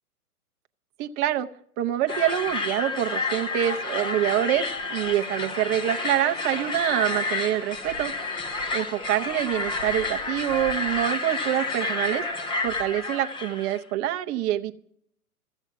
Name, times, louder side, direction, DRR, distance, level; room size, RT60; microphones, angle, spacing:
voice 1, 1.0-1.5 1.8-8.1 8.7-12.2 12.6-14.7, right 12 dB, 25° right, 7 dB, 0.7 m, -26 dB
sound 1, 2.1-13.8, left 3 dB, 10° left, 0.6 m, -30 dB
14.5 x 8.1 x 9.4 m, 0.65 s
figure-of-eight pair, 120°, 45 cm